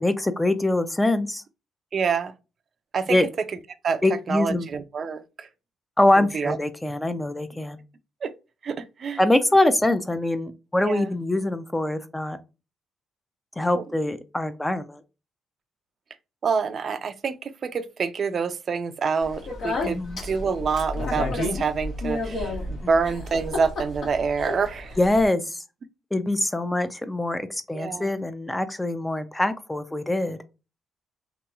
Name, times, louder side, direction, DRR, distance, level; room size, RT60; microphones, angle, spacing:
voice 1, 0.0-1.4 3.1-3.3 4.0-4.7 6.0-7.8 9.2-12.4 13.6-15.0 19.8-20.2 22.8-22.9 25.0-25.6 26.1-30.4, left 1 dB, 10° left, 0.4 m, -24 dB
voice 2, 1.9-2.3 2.9-3.2 3.8-4.0 4.3-5.5 6.2-6.6 8.2-8.3 8.6-9.2 10.8-11.1 13.7-13.8 16.4-25.0 27.7-28.2, right 5 dB, 50° right, 0.4 m, -27 dB
Speech, 19.2-25.3, left 2 dB, 65° left, 1.3 m, -31 dB
3.0 x 2.9 x 2.3 m
cardioid pair, 90°, 0 cm